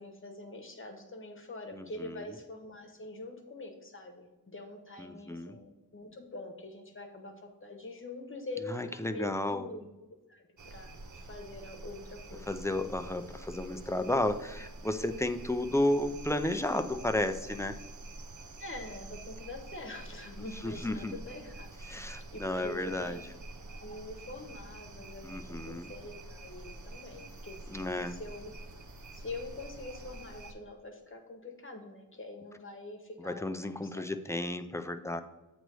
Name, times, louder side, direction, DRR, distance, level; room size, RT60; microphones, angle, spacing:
voice 1, 0.0-9.9 10.3-12.5 18.6-21.7 22.0-23.2 23.6-28.5 29.1-34.0, left 2 dB, 35° left, 3 dB, 1.1 m, -45 dB
voice 2, 1.7-2.2 5.0-5.6 8.7-9.7 12.5-17.8 20.6-21.1 21.9-23.2 25.2-25.9 27.7-28.2 33.2-35.2, left 1 dB, 10° left, 8 dB, 0.4 m, -33 dB
sound 1, 10.6-30.5, right 2 dB, 60° right, 0.7 m, -47 dB
7.9 x 3.1 x 6.1 m, 1.1 s
wide cardioid pair, 90°, 35 cm